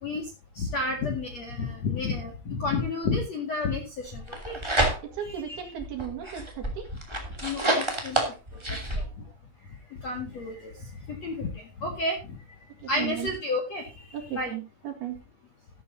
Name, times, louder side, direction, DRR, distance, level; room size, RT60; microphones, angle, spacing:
voice 1, 0.6-4.6 5.3-5.7 7.4-8.2 8.7-9.0 10.0-10.7 11.1-11.5 11.8-12.4 12.9-14.0 14.3-14.5, left 3 dB, 50° left, 3 dB, 2.1 m, -31 dB
sound 1, 4.1-5.3 5.8-9.0, right 1 dB, 10° right, 1.4 m, -28 dB
voice 2, 5.0-6.9 8.5-9.0 12.8-13.3 14.1-15.2, right 10 dB, 60° right, 5 dB, 3.4 m, -36 dB
13.5 x 13.0 x 2.7 m, 0.29 s
omnidirectional pair, 5.8 m